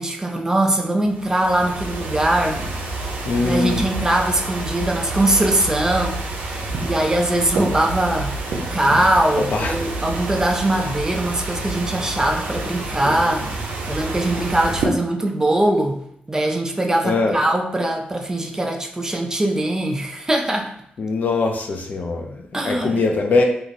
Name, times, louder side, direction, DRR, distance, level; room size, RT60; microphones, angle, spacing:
voice 1, 0.0-2.6 3.4-8.4 8.7-16.0 16.3-20.7 22.5-23.0, right 1 dB, 20° right, 2 dB, 0.4 m, -21 dB
sound 1, 1.0-14.9, right 2 dB, 90° right, 0.5 m, -28 dB
voice 2, 3.2-3.8 9.4-9.8 17.0-17.4 21.0-23.4, left 3 dB, 60° left, 2 dB, 0.5 m, -21 dB
2.9 x 2.5 x 2.5 m, 0.72 s
cardioid pair, 90°, 3 cm